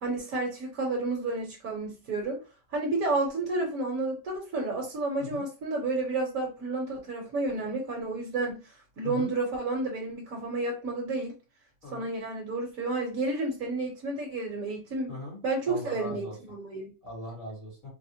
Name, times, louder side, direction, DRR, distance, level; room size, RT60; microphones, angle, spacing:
voice 1, 0.0-2.4 2.7-8.6 9.0-11.3 11.9-15.2 15.4-16.9, right 2 dB, 65° right, 0 dB, 1.3 m, -31 dB
voice 2, 15.1-16.3 17.0-17.9, left 2 dB, 65° left, -6 dB, 2.3 m, -39 dB
4.1 x 2.1 x 2.7 m, 0.31 s
omnidirectional pair, 1.5 m